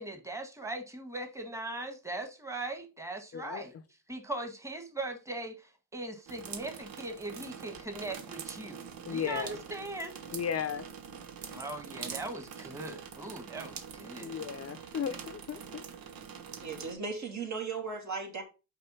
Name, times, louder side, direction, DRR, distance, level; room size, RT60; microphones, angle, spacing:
voice 1, 0.0-3.7 4.1-8.8 9.1-10.1 11.5-14.4, right 2 dB, 10° right, 1.6 m, -40 dB
voice 2, 3.3-3.6 9.0-9.6 10.3-10.9 14.2-15.8, left 8 dB, 45° left, 0.7 m, -35 dB
sound 1, 6.3-16.9, right 7 dB, 75° right, 1.2 m, -44 dB
voice 3, 16.6-18.4, right 4 dB, 50° right, 2.7 m, -36 dB
5.6 x 4.7 x 5.4 m
cardioid pair, 90°, 35 cm